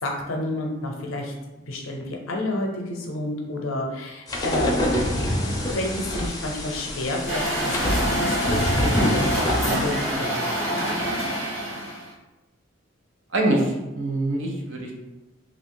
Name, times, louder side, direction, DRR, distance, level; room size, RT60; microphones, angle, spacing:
voice 1, 0.0-1.3 1.7-4.8 5.7-11.1, left 1 dB, 90° left, 1 dB, 0.6 m, -30 dB
sound 1, 4.3-10.2, left 1 dB, 20° left, 0.5 m, -26 dB
Truck, 7.3-12.1, right 1 dB, 15° right, 0.9 m, -26 dB
voice 2, 13.3-14.9, right 1 dB, 70° right, 0 dB, 0.7 m, -24 dB
2.8 x 2.4 x 3.6 m, 1.1 s
head